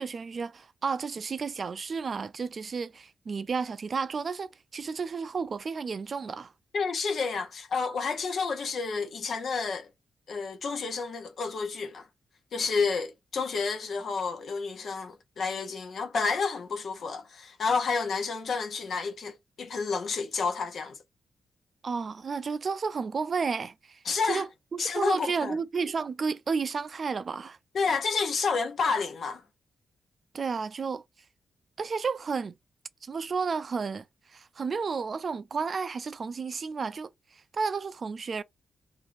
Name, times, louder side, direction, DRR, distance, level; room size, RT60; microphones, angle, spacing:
voice 1, 0.0-6.5 21.8-27.6 30.3-31.0 31.8-32.5 33.0-38.4, right 5 dB, 50° right, 0.4 m, -32 dB
voice 2, 6.7-9.9 10.3-12.1 12.5-21.0 24.0-24.4 24.8-25.6 27.7-29.4, left 4 dB, 65° left, 0.7 m, -30 dB
3.0 x 2.6 x 2.5 m
cardioid pair, 85°, 0 cm